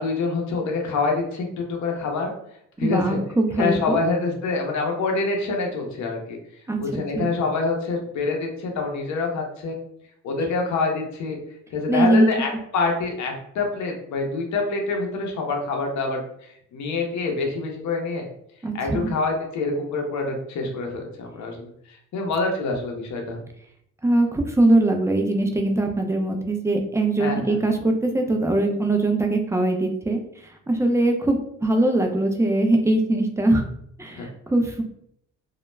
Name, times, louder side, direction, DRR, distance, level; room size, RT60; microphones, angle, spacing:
voice 1, 0.0-2.3 2.8-3.2 3.6-6.4 6.8-9.7 10.2-11.4 11.7-18.3 18.7-23.4 27.2-27.6 34.1-34.2, left 3 dB, 70° left, 2 dB, 0.7 m, -26 dB
voice 2, 2.8-4.0 6.7-6.8 7.2-7.3 11.9-12.3 18.6-19.1 24.0-30.2 30.7-33.6 34.0-34.8, right 2 dB, 10° right, 3 dB, 0.4 m, -21 dB
2.3 x 2.1 x 3.1 m, 0.71 s
cardioid pair, 90°, 30 cm